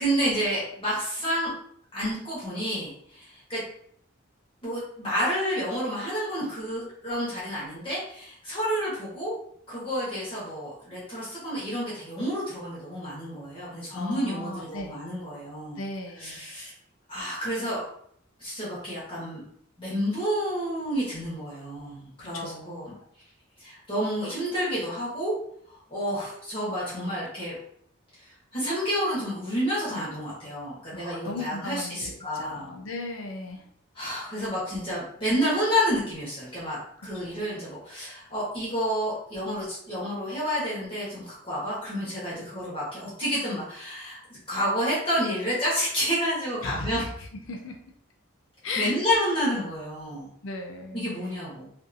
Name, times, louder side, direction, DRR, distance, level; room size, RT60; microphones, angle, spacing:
voice 1, 0.0-1.5 1.9-3.6 4.6-9.3 9.7-15.8 16.2-16.7 17.1-17.8 18.4-19.4 19.8-22.9 23.6-25.3 25.7-27.6 28.1-28.2 28.5-32.7 33.9-47.0 48.8-50.3 50.9-51.7, equal, 25° left, -8 dB, 1.0 m, -30 dB
voice 2, 13.9-14.9 15.8-16.4 22.2-23.0 30.9-33.7 37.2-37.4 46.6-47.8 48.6-49.0 50.4-51.2, left 2 dB, 75° left, 3 dB, 0.5 m, -36 dB
2.6 x 2.4 x 2.6 m, 0.65 s
head